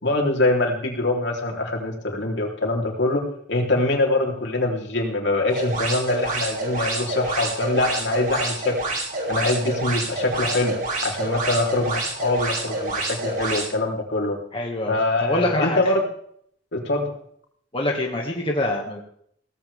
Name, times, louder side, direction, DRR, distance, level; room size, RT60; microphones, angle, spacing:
voice 1, 0.0-3.2 3.5-8.8 9.3-10.7 11.0-14.4 14.9-16.0 16.7-17.1, left 2 dB, 70° left, 1 dB, 3.7 m, -23 dB
sound 1, 5.5-13.7, right 2 dB, 50° right, 6.2 m, -28 dB
voice 2, 14.5-15.0 15.2-15.8 17.7-19.0, left 1 dB, 30° left, 0 dB, 2.0 m, -25 dB
17.5 x 15.5 x 3.6 m, 0.64 s
head